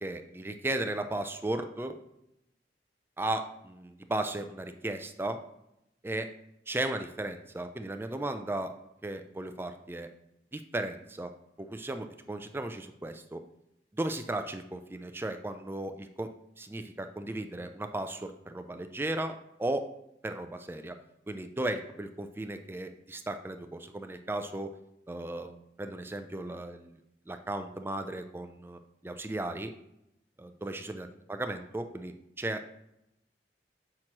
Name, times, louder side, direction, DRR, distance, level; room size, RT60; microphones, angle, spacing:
voice 1, 0.0-2.0 3.2-5.4 6.0-6.3 6.7-8.8 9.0-10.1 10.5-11.3 11.6-13.4 13.9-19.9 20.2-21.0 21.3-24.8 25.1-27.0 27.3-29.7 30.4-32.7, right 1 dB, 15° right, 7 dB, 0.4 m, -36 dB
7.7 x 6.0 x 2.9 m, 0.82 s
head